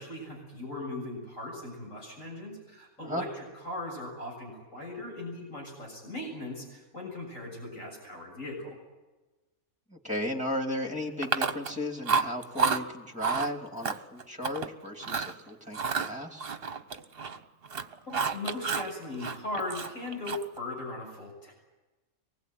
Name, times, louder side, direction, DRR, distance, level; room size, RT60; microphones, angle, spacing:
voice 1, 0.0-8.8 18.1-21.5, left 2 dB, 75° left, 0 dB, 7.6 m, -39 dB
voice 2, 9.9-16.5, left 1 dB, 5° right, 3 dB, 2.9 m, -35 dB
Chewing mastication, 11.2-11.8 12.1-12.8 13.2-13.5 13.8-14.7 15.0-15.3 15.7-17.4 17.6-18.9 19.2-20.6, right 5 dB, 50° right, 1.2 m, -30 dB
24.0 x 20.5 x 9.3 m, 1.2 s
omnidirectional pair, 1.4 m